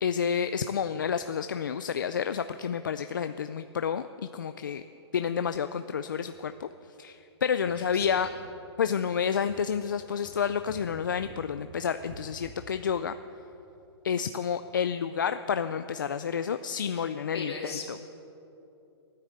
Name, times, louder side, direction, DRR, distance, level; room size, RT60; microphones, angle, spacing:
voice 1, 0.0-4.8 5.1-6.7 7.0-8.3 8.8-13.1 14.0-18.0, left 7 dB, 45° left, 10 dB, 0.4 m, -30 dB
sound 1, 6.2-6.4 6.7-6.8 7.7-8.4 8.9-9.2 9.5-9.6 10.2-11.4 11.9-12.7 13.1-13.2 13.4-13.7 14.3-14.4, right 1 dB, 30° right, 3.6 m, -48 dB
voice 2, 7.7-8.3 17.0-18.0, left 4 dB, 65° left, -1 dB, 3.2 m, -40 dB
15.0 x 9.9 x 8.2 m, 2.9 s
hypercardioid pair, 180°, 14 cm